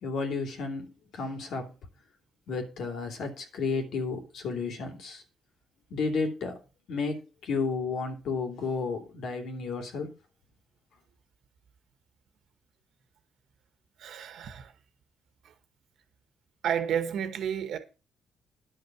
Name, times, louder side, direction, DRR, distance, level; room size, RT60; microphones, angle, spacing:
voice 1, 0.0-1.7 2.5-5.2 5.9-6.5 6.9-10.1, left 4 dB, 70° left, 2.9 m, -32 dB
voice 2, 14.0-14.7 15.4-15.5 16.6-17.8, right 8 dB, 75° right, 1.6 m, -31 dB
10.5 x 6.1 x 6.2 m
cardioid pair, 90°, 0 cm